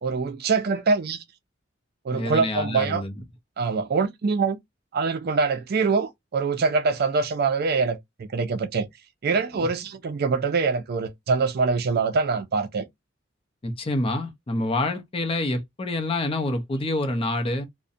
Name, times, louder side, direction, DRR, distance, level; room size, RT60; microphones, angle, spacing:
voice 1, 0.0-1.2 2.0-3.0 3.6-4.6 4.9-8.9 9.2-12.9, right 4 dB, 55° right, 0.4 m, -24 dB
voice 2, 2.1-3.1 9.5-9.7 13.6-17.6, left 2 dB, 30° left, 0.5 m, -27 dB
2.6 x 2.1 x 2.4 m
head